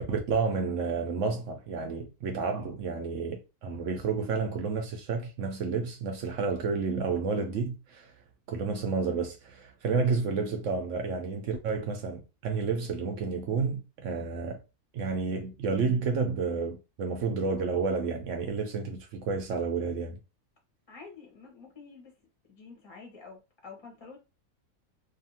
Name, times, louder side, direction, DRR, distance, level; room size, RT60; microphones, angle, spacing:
voice 1, 0.1-8.1 8.5-14.6 14.9-20.2, right 4 dB, 65° right, 0.9 m, -30 dB
voice 2, 20.9-22.1 22.5-24.2, left 4 dB, 25° left, 0.7 m, -48 dB
2.7 x 2.5 x 2.6 m
omnidirectional pair, 1.5 m